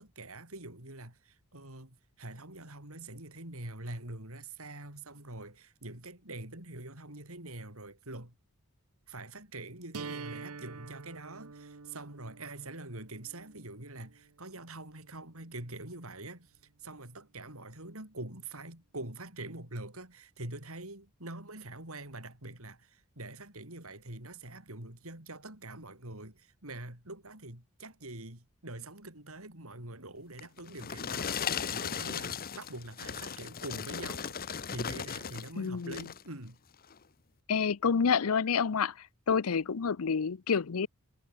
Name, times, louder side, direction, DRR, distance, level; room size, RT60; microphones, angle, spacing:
voice 1, 0.0-8.3 9.1-16.5 16.8-36.6, right 2 dB, 70° right, 6.5 m, -45 dB
sound 1, 9.9-15.9, right 4 dB, 90° right, 1.0 m, -47 dB
sound 2, 30.4-35.5 35.8-36.3 36.8-37.0, left 7 dB, 45° left, 1.0 m, -37 dB
voice 2, 35.6-36.0 37.5-38.9 39.3-40.9, left 6 dB, 75° left, 0.6 m, -28 dB
head